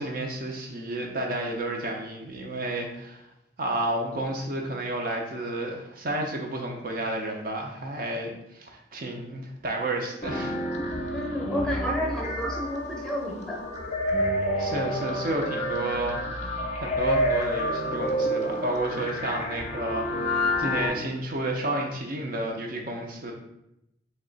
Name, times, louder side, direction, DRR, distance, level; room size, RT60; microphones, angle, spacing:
voice 1, 0.0-3.3 3.6-10.6 14.6-16.5 16.8-23.3, right 1 dB, 45° right, 1 dB, 0.5 m, -31 dB
sound 1, 10.2-20.9, equal, 35° left, 0.5 m, -29 dB
voice 2, 11.1-13.6, equal, 5° left, -2 dB, 0.7 m, -30 dB
3.1 x 2.8 x 3.9 m, 0.84 s
head